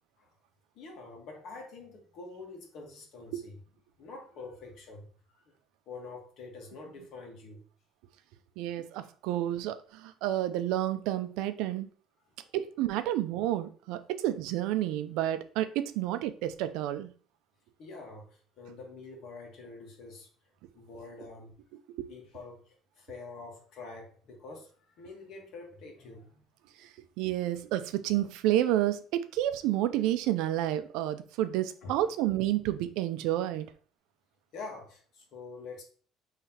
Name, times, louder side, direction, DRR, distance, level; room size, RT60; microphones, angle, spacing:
voice 1, 0.7-3.6 4.0-5.1 5.4-5.5 5.9-7.6 12.4-12.5 17.8-20.3 20.7-21.5 22.1-26.5 31.8-32.0 34.5-35.8, left 3 dB, 55° left, 1.5 m, -46 dB
voice 2, 8.6-11.9 12.5-17.1 22.0-22.1 26.8-26.9 27.2-33.7, right 13 dB, 85° right, 0.5 m, -30 dB
5.7 x 3.2 x 2.9 m
cardioid pair, 165°, 0 cm